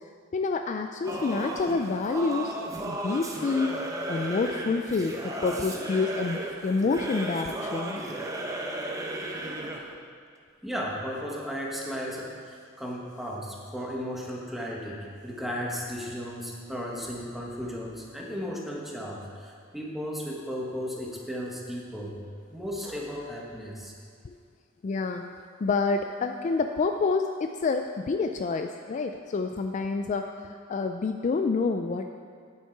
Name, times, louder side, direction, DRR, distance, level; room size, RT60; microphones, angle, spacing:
voice 1, 0.3-2.6 2.8-3.8 4.1-8.0 24.2-24.4 24.8-25.3 25.6-32.1, left 4 dB, 35° left, 6 dB, 0.3 m, -28 dB
Singing / Musical instrument, 1.0-9.9, right 1 dB, 15° right, 0.8 m, -34 dB
voice 2, 10.6-22.2 22.5-23.9, equal, ahead, -3 dB, 1.4 m, -35 dB
9.4 x 8.2 x 4.6 m, 2.2 s
head